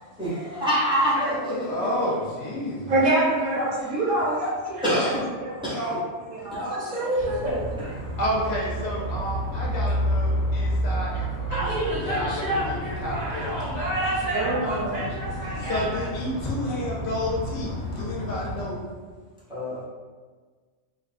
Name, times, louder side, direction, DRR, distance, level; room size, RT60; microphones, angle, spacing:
voice 1, 0.2-1.9 4.8-5.2 5.6-5.9 6.5-6.7 19.5-19.9, equal, 5° right, -10 dB, 0.4 m, -25 dB
voice 2, 1.5-2.9 6.4-6.5 8.2-11.7 11.9-13.7 15.6-18.9, left 1 dB, 60° left, -4 dB, 0.8 m, -30 dB
voice 3, 2.9-3.6 4.7-5.1 6.7-7.6 11.5-16.1, right 1 dB, 40° right, -8 dB, 0.7 m, -27 dB
voice 4, 3.6-5.1 5.4-7.1 14.3-15.0, right 1 dB, 80° right, -8 dB, 1.0 m, -29 dB
sound 1, 7.2-18.7, equal, 25° left, 0.7 m, -30 dB
2.6 x 2.2 x 2.4 m, 1.4 s
omnidirectional pair, 1.3 m